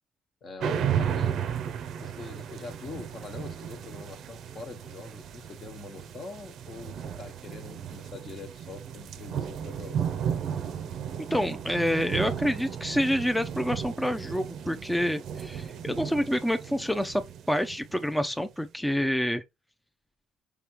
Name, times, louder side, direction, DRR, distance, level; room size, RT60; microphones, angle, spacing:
voice 1, 0.4-1.4 2.0-10.0, left 3 dB, 45° left, 1.3 m, -43 dB
sound 1, 0.6-18.4, right 8 dB, 60° right, 0.5 m, -34 dB
voice 2, 11.3-17.2 17.5-19.4, equal, 5° left, 0.5 m, -27 dB
4.9 x 3.3 x 3.0 m
hypercardioid pair, 55°, 0 cm